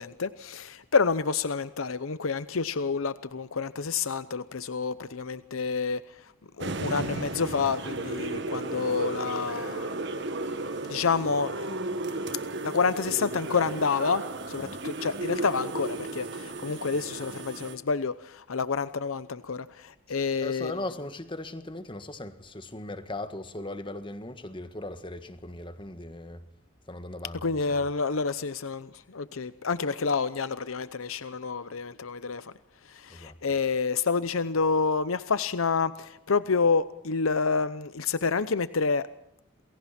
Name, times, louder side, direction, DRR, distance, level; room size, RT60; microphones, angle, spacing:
voice 1, 0.0-10.0 10.9-11.7 12.6-20.8 27.4-32.5 32.8-39.1, left 5 dB, 85° left, 0.8 m, -28 dB
sound 1, 6.6-17.8, right 2 dB, 60° right, 2.0 m, -34 dB
voice 2, 20.1-26.5 26.9-27.9 33.1-33.4, left 1 dB, 25° left, 1.7 m, -39 dB
28.5 x 21.5 x 4.4 m
head